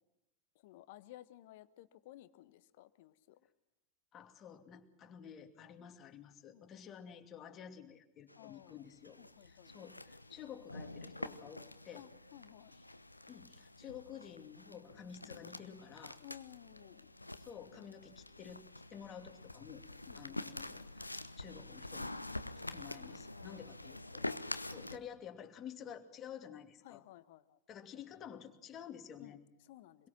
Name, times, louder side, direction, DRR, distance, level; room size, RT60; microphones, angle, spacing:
voice 1, 0.6-3.5 5.8-5.9 6.5-6.8 8.3-8.7 9.2-9.7 11.9-12.7 16.2-17.1 20.1-20.4 23.3-23.7 26.8-27.6 29.2-30.1, left 14 dB, 50° left, 15 dB, 1.1 m, -56 dB
voice 2, 4.1-12.0 13.3-16.2 17.4-19.8 20.1-24.3 24.6-27.0 27.7-29.4, left 8 dB, 30° left, 5 dB, 2.6 m, -51 dB
sound 1, 8.3-25.0, left 2 dB, 85° left, 0.9 m, -47 dB
25.5 x 22.5 x 6.1 m, 0.92 s
figure-of-eight pair, 90°, 0 cm